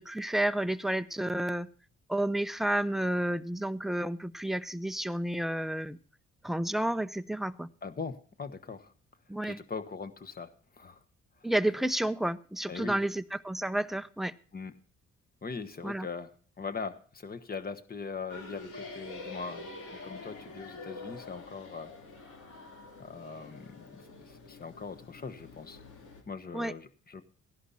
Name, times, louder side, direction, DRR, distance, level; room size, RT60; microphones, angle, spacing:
voice 1, 0.0-1.7 2.1-6.0 6.4-7.7 9.3-9.6 11.4-14.3 15.8-16.1 26.5-26.7, right 1 dB, ahead, 12 dB, 0.6 m, -31 dB
voice 2, 7.8-8.9 9.4-11.0 11.4-11.5 12.7-13.0 14.5-14.7 15.4-16.3 16.6-19.7 20.0-21.9 23.0-25.8 26.3-27.2, left 5 dB, 30° left, 10 dB, 1.3 m, -41 dB
sound 1, 18.3-26.2, left 3 dB, 85° left, 3.2 m, -46 dB
15.5 x 11.0 x 4.2 m, 0.42 s
cardioid pair, 90°, 30 cm